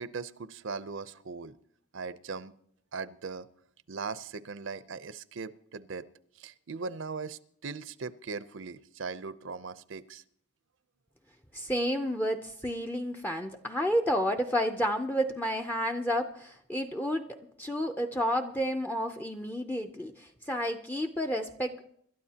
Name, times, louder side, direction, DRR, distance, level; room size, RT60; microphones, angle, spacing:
voice 1, 0.0-1.5 1.9-2.5 2.9-3.5 3.9-6.1 6.4-10.2, right 4 dB, 70° right, 15 dB, 0.6 m, -39 dB
voice 2, 11.5-21.9, equal, 10° left, 6 dB, 0.5 m, -31 dB
26.5 x 12.5 x 2.8 m, 0.67 s
head